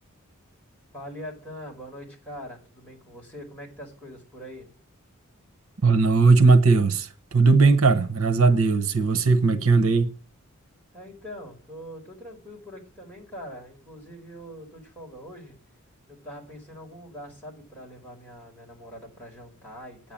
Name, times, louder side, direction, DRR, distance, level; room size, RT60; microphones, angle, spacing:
voice 1, 0.9-4.7 10.9-15.6 16.1-20.1, equal, 10° left, 4.3 m, -42 dB
voice 2, 5.8-10.1, right 4 dB, 75° right, 1.1 m, -18 dB
9.3 x 8.7 x 8.7 m
head